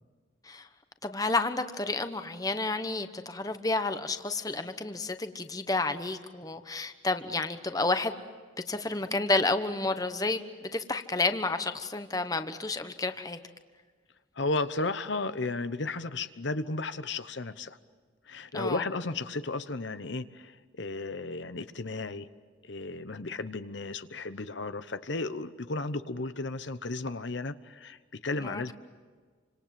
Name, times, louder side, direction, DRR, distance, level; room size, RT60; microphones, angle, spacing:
voice 1, 1.0-8.2 8.7-13.4 18.5-18.8 28.4-28.7, left 3 dB, 20° left, 9 dB, 1.1 m, -30 dB
voice 2, 14.4-17.8 18.3-22.3 22.6-28.7, left 3 dB, 70° left, 11 dB, 1.0 m, -34 dB
29.0 x 26.0 x 7.7 m, 1.5 s
head